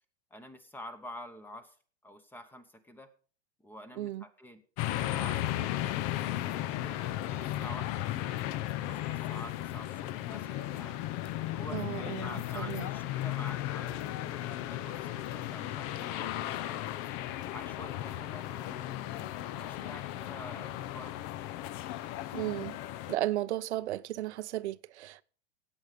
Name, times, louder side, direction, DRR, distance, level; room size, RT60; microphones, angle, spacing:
voice 1, 0.3-1.8 2.0-3.1 3.6-4.6 4.9-8.4 8.9-11.0 11.4-16.9 17.5-21.1, left 1 dB, 5° left, 1.0 m, -48 dB
sound 1, 4.8-23.2, left 14 dB, 35° left, 0.6 m, -35 dB
voice 2, 11.7-12.3 12.6-12.9 22.3-22.8 23.1-25.2, right 14 dB, 90° right, 0.7 m, -34 dB
17.5 x 8.1 x 5.2 m
supercardioid pair, 155°, 33 cm